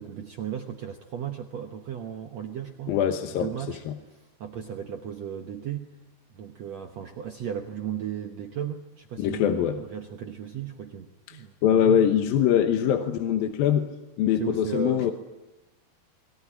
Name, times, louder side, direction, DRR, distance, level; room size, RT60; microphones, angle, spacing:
voice 1, 0.0-3.0 3.4-3.8 4.1-5.9 6.3-12.1 14.4-15.1, right 9 dB, 75° right, 5 dB, 1.6 m, -35 dB
voice 2, 2.9-3.5 3.9-4.0 9.2-9.8 11.3-11.4 11.6-13.9 14.2-15.1, left 9 dB, 70° left, 6 dB, 2.7 m, -23 dB
21.5 x 21.0 x 10.0 m, 1.1 s
omnidirectional pair, 4.7 m